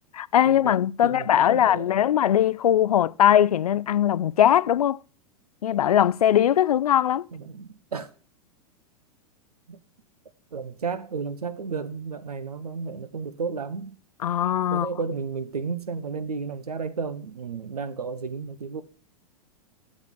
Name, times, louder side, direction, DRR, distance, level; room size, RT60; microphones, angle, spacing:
voice 1, 0.1-5.0 5.6-7.2 14.2-14.9, left 10 dB, 70° left, 0.5 m, -20 dB
voice 2, 1.0-2.1 7.3-8.1 9.7-9.8 10.5-14.0 14.7-18.8, right 5 dB, 80° right, 1.1 m, -33 dB
7.9 x 7.1 x 7.2 m
figure-of-eight pair, 100°, 20 cm